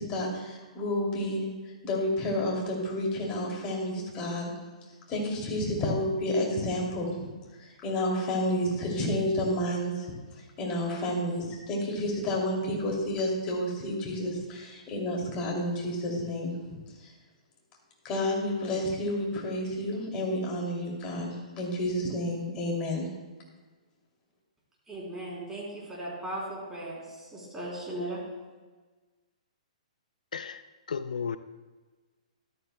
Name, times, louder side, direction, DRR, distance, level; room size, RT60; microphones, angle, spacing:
voice 1, 0.0-1.4 1.8-4.5 5.1-7.3 7.6-10.1 10.6-17.1 18.0-23.1, left 1 dB, 25° left, 2.6 m, -30 dB
voice 2, 24.9-28.2, right 1 dB, 10° right, 3.2 m, -37 dB
voice 3, 30.9-31.4, left 6 dB, 85° left, 0.4 m, -33 dB
13.0 x 12.5 x 2.2 m
hypercardioid pair, 145°, 4 cm